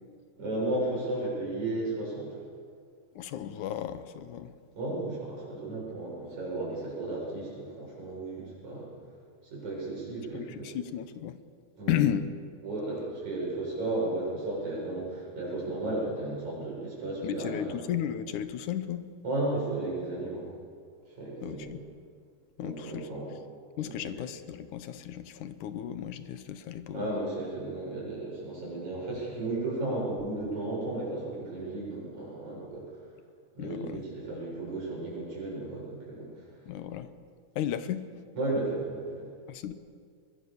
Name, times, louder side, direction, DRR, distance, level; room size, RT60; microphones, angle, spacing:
voice 1, 0.4-2.4 4.7-8.9 9.5-10.7 11.8-12.0 12.6-17.7 19.2-20.4 21.2-21.7 22.6-23.4 23.8-23.9 26.9-32.9 33.5-36.3 38.3-39.3, right 2 dB, 70° right, -4 dB, 8.9 m, -34 dB
voice 2, 3.2-4.5 10.3-11.4 11.9-12.3 17.2-19.1 21.4-21.8 22.6-23.1 23.8-27.1 33.6-34.0 36.7-37.1 37.6-38.0 39.5-39.7, left 10 dB, 85° left, 12 dB, 2.6 m, -34 dB
23.5 x 21.5 x 7.2 m, 2.1 s
omnidirectional pair, 3.4 m